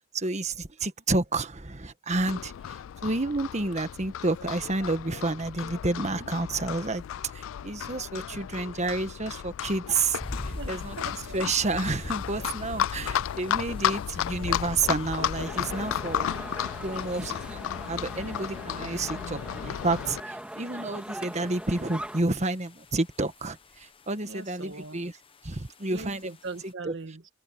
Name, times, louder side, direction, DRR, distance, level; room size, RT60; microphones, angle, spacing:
voice 1, 0.1-7.0 7.3-10.2 10.4-11.0 11.3-16.3 16.8-17.6 17.9-25.1 25.4-26.3 26.6-26.9, right 3 dB, 35° right, 1.5 m, -30 dB
Livestock farm animals working animals, 2.1-20.2, left 10 dB, 85° left, 0.3 m, -34 dB
sound 1, 10.2-26.7, left 1 dB, 30° left, 1.1 m, -46 dB
voice 2, 10.5-11.4 24.2-25.0 25.8-27.3, right 3 dB, 65° right, 1.6 m, -40 dB
sound 2, 15.3-22.2, right 1 dB, 5° right, 2.4 m, -41 dB
head